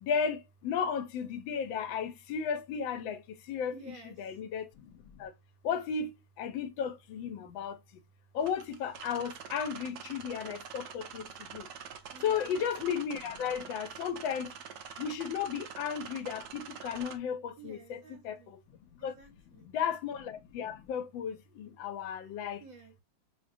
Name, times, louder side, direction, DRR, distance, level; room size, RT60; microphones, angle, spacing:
voice 1, 0.0-3.7 4.2-5.3 5.6-7.8 8.3-11.7 12.2-14.5 15.0-19.1 19.6-22.6, left 7 dB, 90° left, 1.3 m, -34 dB
voice 2, 3.7-4.4 12.1-12.5 17.6-18.5 19.0-19.7 22.6-22.9, right 3 dB, 55° right, 1.2 m, -52 dB
sound 1, 8.4-17.2, right 7 dB, 80° right, 1.3 m, -46 dB
6.0 x 2.1 x 2.5 m
omnidirectional pair, 2.1 m